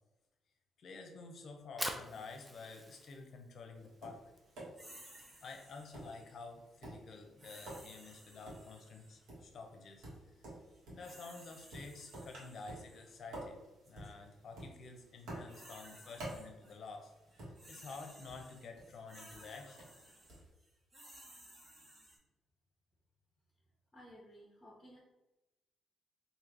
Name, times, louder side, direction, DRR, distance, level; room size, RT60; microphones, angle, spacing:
voice 1, 0.8-4.2 5.4-17.1 17.4-19.9, left 4 dB, 60° left, 4 dB, 0.7 m, -50 dB
Fire, 1.5-7.7, equal, 5° right, 0.5 m, -48 dB
Tap, 3.7-20.5, right 1 dB, 80° right, 1.4 m, -52 dB
sound 1, 4.7-6.4 7.4-9.2 10.7-13.1 13.8-14.1 15.2-16.7 17.0-22.2, right 1 dB, 30° right, 1.3 m, -58 dB
voice 2, 23.9-25.0, equal, 15° left, -6 dB, 1.0 m, -56 dB
3.1 x 2.7 x 3.8 m, 1.0 s
cardioid pair, 90°, 0 cm